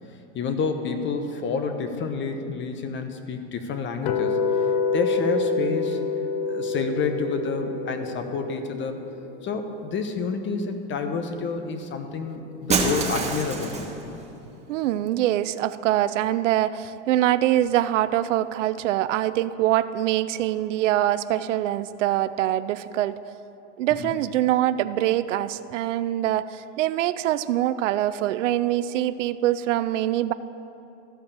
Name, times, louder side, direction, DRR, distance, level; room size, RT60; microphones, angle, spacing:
voice 1, 0.3-4.4 4.9-6.0 6.5-9.0 9.4-14.2 24.0-24.1, left 4 dB, 30° left, 7 dB, 1.0 m, -29 dB
sound 1, 4.0-10.1, left 5 dB, 50° left, 0.7 m, -27 dB
Shatter, 12.7-14.0, right 4 dB, 20° right, 1.5 m, -25 dB
voice 2, 14.7-23.2 23.8-30.3, right 13 dB, 75° right, 14 dB, 0.5 m, -24 dB
14.0 x 5.2 x 6.9 m, 2.9 s
hypercardioid pair, 105°, 37 cm